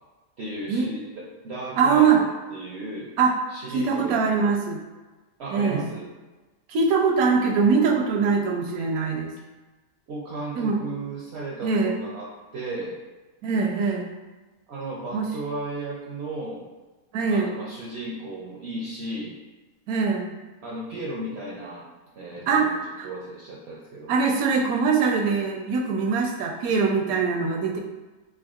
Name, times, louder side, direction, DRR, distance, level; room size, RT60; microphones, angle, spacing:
voice 1, 0.4-3.1 3.5-4.2 5.4-6.1 10.1-13.0 14.7-16.6 17.3-19.3 20.6-21.9 22.2-22.8 23.0-24.1, right 1 dB, 65° right, -4 dB, 0.7 m, -35 dB
voice 2, 1.8-2.2 3.2-3.4 3.7-4.8 5.5-5.9 6.7-9.3 10.6-10.8 11.6-11.9 13.4-14.1 15.1-15.3 17.1-17.5 19.9-20.3 22.5-23.1 24.1-27.8, right 5 dB, 80° right, 1 dB, 1.1 m, -22 dB
3.6 x 3.2 x 2.3 m, 1.2 s
omnidirectional pair, 1.5 m